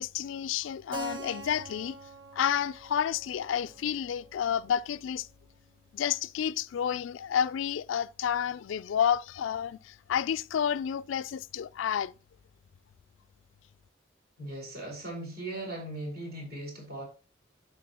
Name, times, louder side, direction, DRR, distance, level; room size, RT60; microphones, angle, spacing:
voice 1, 0.0-2.0 2.3-5.3 5.9-12.1, left 8 dB, 85° left, 0.3 m, -30 dB
Keyboard (musical), 0.9-5.5, right 3 dB, 70° right, 1.0 m, -45 dB
voice 2, 14.4-17.0, right 1 dB, 50° right, 4.1 m, -38 dB
10.0 x 6.6 x 2.9 m
head